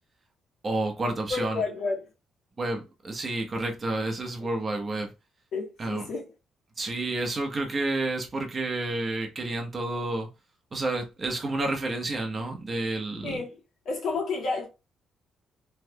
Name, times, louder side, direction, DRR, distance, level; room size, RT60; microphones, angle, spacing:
voice 1, 0.6-1.6 2.6-5.1 5.8-6.1 6.8-10.3 10.7-13.4, right 2 dB, 35° right, 1.0 m, -30 dB
voice 2, 1.3-2.1 5.5-6.2 13.2-13.6 13.8-14.7, left 4 dB, 70° left, 1.4 m, -30 dB
3.3 x 3.2 x 2.3 m
cardioid pair, 90°, 0 cm